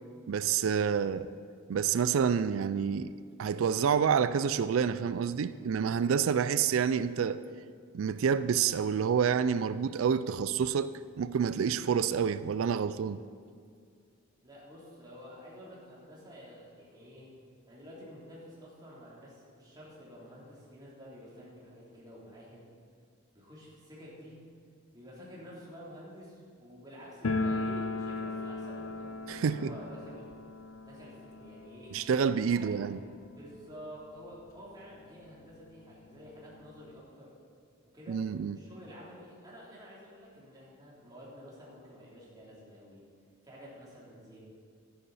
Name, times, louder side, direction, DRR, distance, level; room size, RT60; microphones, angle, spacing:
voice 1, 0.3-1.3 1.7-3.1 3.4-7.4 7.9-13.2 29.3-29.7 31.9-33.0 38.1-38.6, right 7 dB, 75° right, 0.4 m, -28 dB
voice 2, 14.4-17.3 17.7-22.6 23.3-24.4 24.9-30.3 30.8-32.0 32.5-32.8 33.3-37.3 37.9-38.2 38.5-43.0 43.4-44.4, equal, 20° right, 3.2 m, -50 dB
sound 1, 27.2-34.0 34.2-34.3 34.6-34.7 35.4-35.5 35.8-37.0, left 3 dB, 80° left, 0.6 m, -37 dB
12.5 x 10.0 x 4.2 m
head